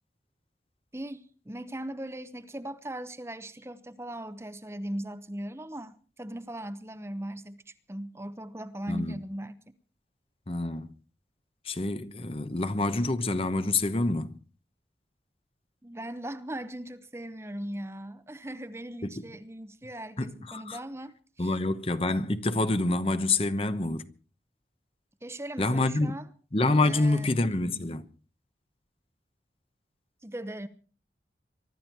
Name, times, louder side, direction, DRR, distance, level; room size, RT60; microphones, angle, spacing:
voice 1, 0.9-9.7 15.8-21.6 25.2-26.2 26.8-27.3 30.2-30.7, right 1 dB, 15° right, 0.9 m, -39 dB
voice 2, 8.9-9.2 10.5-10.9 11.6-14.4 19.0-19.1 20.2-20.8 21.4-24.1 25.6-26.1 26.5-28.0, left 2 dB, 30° left, 1.0 m, -27 dB
23.5 x 12.5 x 4.6 m
head